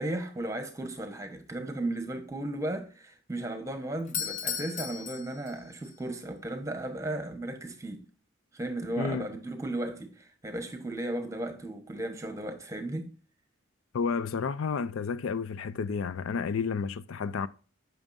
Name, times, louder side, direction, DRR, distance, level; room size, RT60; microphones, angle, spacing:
voice 1, 0.0-8.1 8.5-13.1, right 1 dB, 15° right, 1.0 m, -35 dB
Doorbell, 4.0-5.9, left 7 dB, 35° left, 0.8 m, -36 dB
voice 2, 13.9-17.5, left 5 dB, 80° left, 0.4 m, -31 dB
8.8 x 6.2 x 2.5 m
head